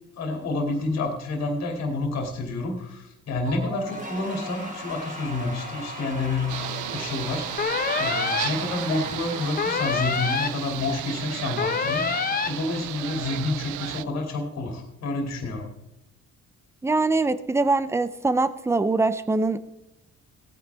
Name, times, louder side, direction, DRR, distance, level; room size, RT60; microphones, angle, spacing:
voice 1, 0.2-6.6 6.9-15.7, left 2 dB, 65° left, 1 dB, 2.6 m, -29 dB
Cheering / Applause / Crowd, 3.4-12.1, right 1 dB, 25° right, 3.1 m, -38 dB
sound 1, 6.5-14.0, right 15 dB, 85° right, 0.5 m, -34 dB
sound 2, 7.6-8.5 9.6-10.5 11.6-12.5, left 6 dB, 30° left, 0.8 m, -26 dB
voice 2, 16.8-19.6, right 3 dB, 10° right, 14 dB, 0.5 m, -23 dB
17.5 x 9.2 x 3.5 m, 0.90 s
cardioid pair, 130°, 29 cm